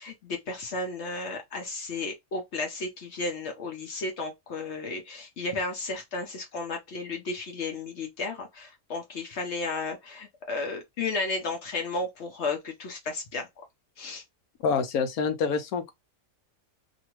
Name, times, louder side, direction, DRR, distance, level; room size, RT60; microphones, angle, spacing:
voice 1, 0.0-13.5 14.0-14.2, left 3 dB, 55° left, 0.9 m, -33 dB
voice 2, 14.6-15.9, left 5 dB, 85° left, 1.1 m, -26 dB
2.7 x 2.6 x 2.9 m
omnidirectional pair, 1.5 m